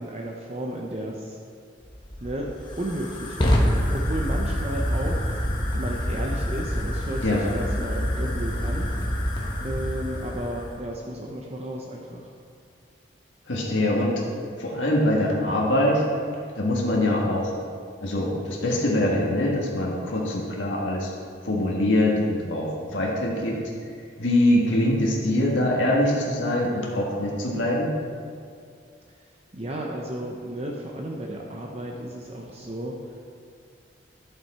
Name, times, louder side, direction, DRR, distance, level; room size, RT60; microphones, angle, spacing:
voice 1, 0.0-1.4 2.2-2.5 2.8-5.3 5.7-8.9 9.6-12.3 29.5-33.0, right 1 dB, 35° right, -1 dB, 0.7 m, -33 dB
Fire, 1.8-10.8, equal, 25° left, 1.1 m, -27 dB
voice 2, 13.5-14.2 14.6-16.0 16.6-17.5 18.0-21.1 21.4-23.6 24.2-27.9, left 1 dB, 85° left, -3 dB, 1.7 m, -23 dB
12.0 x 7.0 x 4.3 m, 2.2 s
head